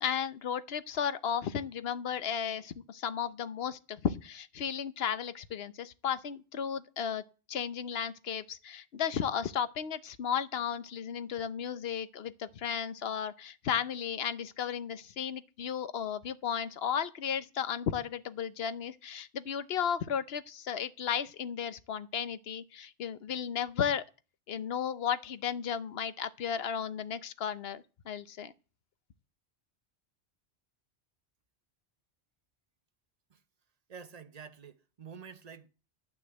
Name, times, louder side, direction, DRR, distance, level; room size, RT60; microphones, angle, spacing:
voice 1, 0.0-7.2 7.5-24.0 24.5-28.5, left 8 dB, 65° left, 1.0 m, -34 dB
voice 2, 33.9-35.7, right 6 dB, 40° right, 0.8 m, -48 dB
11.5 x 6.1 x 7.8 m
omnidirectional pair, 1.1 m